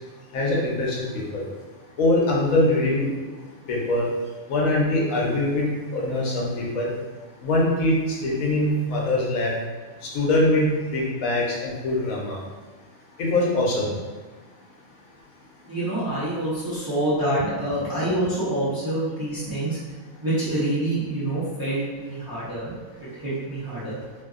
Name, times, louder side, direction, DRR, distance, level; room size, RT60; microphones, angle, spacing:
voice 1, 0.3-1.4 2.0-3.1 3.7-4.1 4.5-5.6 5.9-6.9 7.4-9.5 10.0-10.7 10.9-12.4 13.2-13.9, left 1 dB, 85° left, -3 dB, 1.1 m, -23 dB
voice 2, 15.7-19.8 20.2-24.0, right 1 dB, 30° right, -10 dB, 0.4 m, -26 dB
2.7 x 2.7 x 2.4 m, 1.3 s
omnidirectional pair, 1.4 m